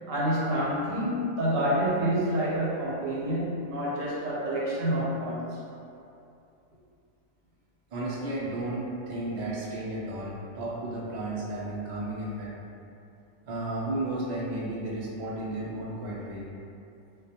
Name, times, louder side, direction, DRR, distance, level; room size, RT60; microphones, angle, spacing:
voice 1, 0.1-5.6, equal, 80° right, -6 dB, 1.0 m, -28 dB
voice 2, 7.9-12.5 13.4-16.4, right 1 dB, 65° right, -6 dB, 0.4 m, -33 dB
2.2 x 2.2 x 2.7 m, 2.6 s
omnidirectional pair, 1.3 m